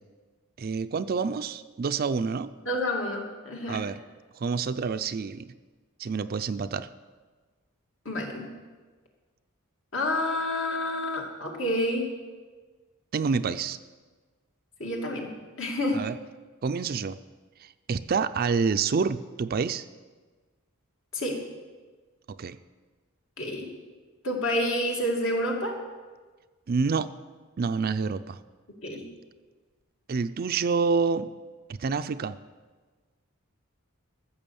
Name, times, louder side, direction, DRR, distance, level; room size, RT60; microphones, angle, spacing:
voice 1, 0.6-2.5 3.7-4.0 4.4-5.5 6.0-6.9 13.1-13.8 15.9-16.1 16.6-17.2 17.6-19.8 22.4-22.6 26.7-27.1 27.6-28.4 30.1-31.3 31.7-32.4, right 5 dB, 45° right, 12 dB, 0.4 m, -27 dB
voice 2, 2.7-3.8 8.0-8.5 9.9-12.1 14.8-15.3 15.6-16.0 21.1-21.4 23.4-23.7 24.2-25.8 28.8-29.0, left 1 dB, 60° left, 0 dB, 2.3 m, -29 dB
14.5 x 6.9 x 7.0 m, 1.4 s
head